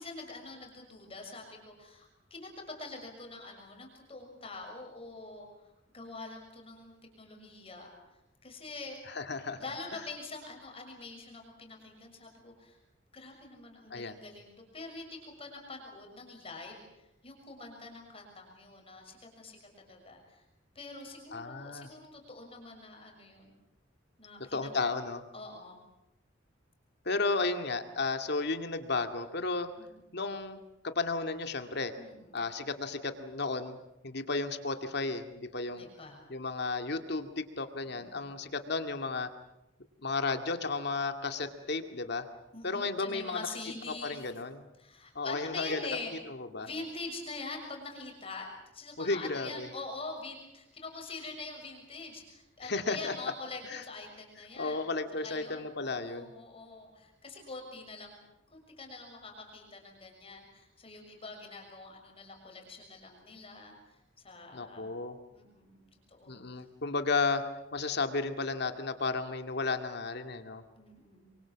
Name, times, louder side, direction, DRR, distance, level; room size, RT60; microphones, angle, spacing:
voice 1, 0.0-5.5 5.9-7.9 8.4-9.0 9.6-12.8 13.1-16.8 17.2-20.4 20.7-23.5 24.2-24.7 25.3-25.8 29.8-29.9 32.0-32.3 35.7-36.2 37.8-38.2 42.5-44.2 44.8-46.1 46.6-48.5 48.7-54.8 55.2-58.2 58.5-63.7 64.2-64.9 65.3-66.4 70.8-71.3, left 3 dB, 30° left, 1 dB, 6.5 m, -45 dB
voice 2, 9.1-9.6 13.9-14.2 21.3-21.9 24.5-25.2 27.1-29.7 30.1-30.6 30.8-31.9 32.3-33.8 34.0-35.8 36.3-39.3 40.0-42.3 42.6-43.5 44.0-44.7 45.2-46.0 46.3-46.7 49.0-49.7 52.6-53.1 53.7-53.8 54.6-56.3 64.5-65.2 66.3-67.4 67.7-70.6, left 3 dB, 60° left, 7 dB, 2.2 m, -33 dB
29.0 x 24.0 x 7.4 m, 0.89 s
head